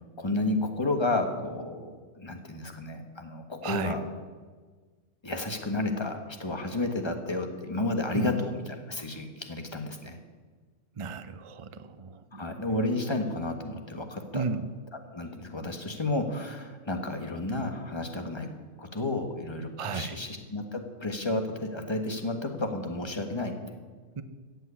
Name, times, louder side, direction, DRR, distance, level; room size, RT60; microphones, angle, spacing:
voice 1, 0.2-4.0 5.2-10.2 12.3-14.4 15.1-18.5 18.8-23.5, left 2 dB, 20° left, 5 dB, 1.3 m, -31 dB
voice 2, 3.6-3.9 8.1-8.3 11.0-12.4 14.3-14.7 19.8-20.2 24.2-24.3, right 5 dB, 40° right, 11 dB, 0.4 m, -34 dB
14.5 x 7.8 x 8.4 m, 1.4 s
omnidirectional pair, 1.5 m